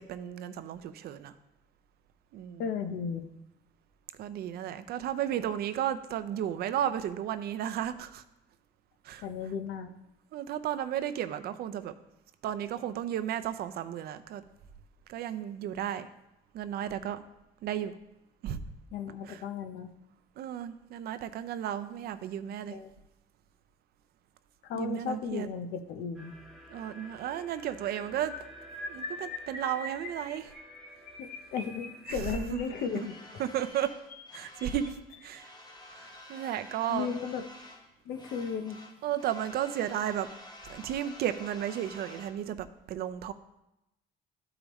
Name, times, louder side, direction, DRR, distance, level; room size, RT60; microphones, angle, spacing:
voice 1, 0.0-1.3 2.3-2.6 4.2-8.2 9.0-9.2 10.3-11.9 12.4-14.4 15.1-16.1 16.5-17.2 17.6-17.9 18.4-18.6 19.3-19.4 20.4-22.7 24.7-25.5 26.7-28.3 28.9-30.5 32.3-32.6 33.4-33.9 34.3-34.9 35.2-35.5 35.9-37.1 39.0-40.3 40.6-43.3, right 10 dB, 65° right, 11 dB, 0.6 m, -33 dB
voice 2, 2.6-3.3 9.2-9.9 18.9-19.9 22.7-22.9 24.6-26.3 31.2-33.1 36.9-37.4 38.0-38.8, left 6 dB, 75° left, 7 dB, 0.9 m, -35 dB
sound 1, 26.2-33.7, equal, ahead, 1.2 m, -53 dB
sound 2, 28.2-35.4 36.1-36.4 36.6-36.9 37.1-37.4, left 2 dB, 50° left, 1.5 m, -44 dB
sound 3, 32.7-35.0 35.3-37.9 38.1-42.4, left 1 dB, 25° left, 1.5 m, -50 dB
12.5 x 4.9 x 3.1 m, 0.90 s
cardioid pair, 110°, 17 cm